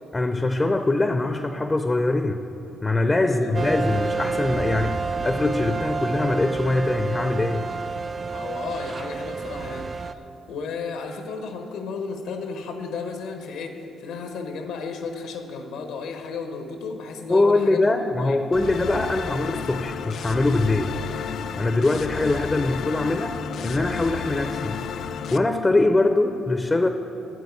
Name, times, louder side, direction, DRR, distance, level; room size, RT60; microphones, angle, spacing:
voice 1, 0.1-2.4 2.8-7.7 17.3-21.0 21.6-23.3 23.6-24.9 25.3-26.9, left 2 dB, 20° left, 8 dB, 0.5 m, -22 dB
voice 2, 3.2-3.6 8.3-10.2 10.5-17.8 18.1-18.4, left 5 dB, 90° left, 5 dB, 1.1 m, -34 dB
sound 1, 3.5-10.1, right 4 dB, 35° right, 0.4 m, -29 dB
sound 2, 18.5-25.4, left 7 dB, 70° left, 0.4 m, -32 dB
9.2 x 7.9 x 8.1 m, 2.8 s
cardioid pair, 90°, 0 cm